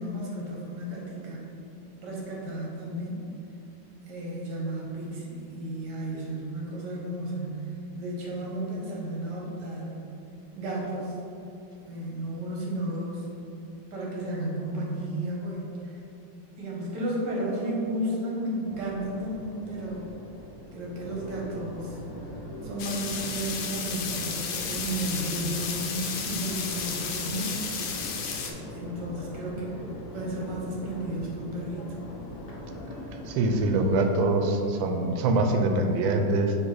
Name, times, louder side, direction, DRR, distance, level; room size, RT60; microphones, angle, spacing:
voice 1, 0.0-1.6 2.0-3.3 4.1-10.1 10.5-11.2 11.9-13.3 13.9-16.0 16.6-20.1 20.7-22.0 22.6-27.7 28.7-29.9 30.1-32.0, right 1 dB, 65° right, -3 dB, 1.7 m, -33 dB
Crowd, 18.7-33.8, left 1 dB, 50° left, 0.7 m, -41 dB
sound 1, 22.8-28.5, left 6 dB, 65° left, 1.2 m, -33 dB
voice 2, 33.3-36.6, right 2 dB, 80° right, 5 dB, 1.4 m, -24 dB
6.4 x 3.2 x 4.8 m, 2.8 s
omnidirectional pair, 2.1 m